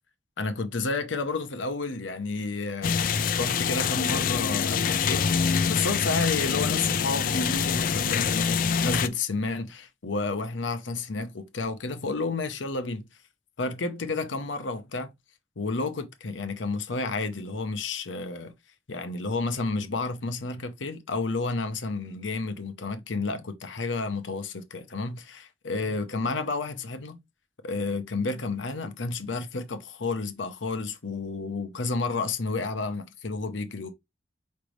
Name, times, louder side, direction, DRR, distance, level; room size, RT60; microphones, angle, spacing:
voice 1, 0.4-5.3 5.7-13.1 13.6-15.1 15.6-18.5 18.9-27.2 27.6-33.9, left 3 dB, 90° left, 0.8 m, -31 dB
sound 1, 2.8-9.1, left 6 dB, 45° left, 0.3 m, -25 dB
5.2 x 3.3 x 3.1 m
head